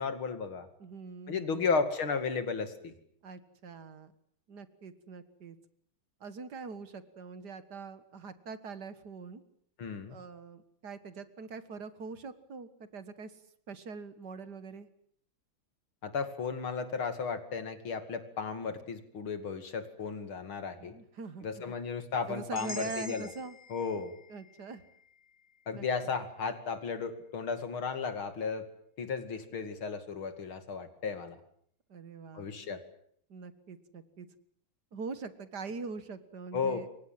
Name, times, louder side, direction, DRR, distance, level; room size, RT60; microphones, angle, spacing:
voice 1, 0.0-0.7 1.3-2.9 9.8-10.2 16.0-20.9 21.4-23.3 23.7-24.1 25.7-28.7 29.0-31.4 32.3-32.8 36.5-36.9, left 5 dB, 85° left, 9 dB, 3.3 m, -34 dB
voice 2, 0.8-1.6 3.2-4.1 4.5-5.6 6.2-9.4 10.1-13.4 13.7-14.9 20.8-21.7 22.3-23.6 24.3-24.8 25.7-25.8 31.9-32.7 33.3-34.3 34.9-36.9, right 4 dB, 55° right, 12 dB, 2.1 m, -43 dB
sound 1, 22.5-26.6, left 3 dB, 30° left, 2.2 m, -48 dB
28.0 x 24.0 x 7.6 m, 0.65 s
omnidirectional pair, 2.2 m